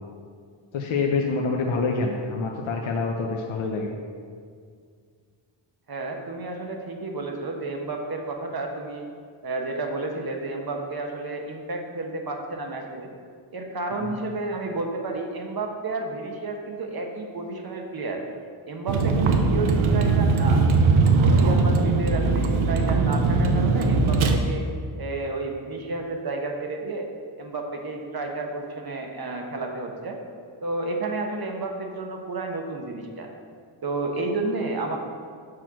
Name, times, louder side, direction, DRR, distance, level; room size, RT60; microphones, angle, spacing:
voice 1, 0.7-4.0 13.9-14.1, left 4 dB, 70° left, 1 dB, 0.8 m, -26 dB
voice 2, 5.9-9.1 9.4-13.1 13.5-18.2 18.7-20.6 21.0-24.7 25.0-27.1 27.4-30.2 30.6-33.3 33.8-35.0, right 2 dB, 50° right, 2 dB, 1.1 m, -31 dB
Vehicle, 18.9-24.3, right 4 dB, 75° right, 0.8 m, -20 dB
6.2 x 4.3 x 6.2 m, 2.1 s
cardioid pair, 85°, 49 cm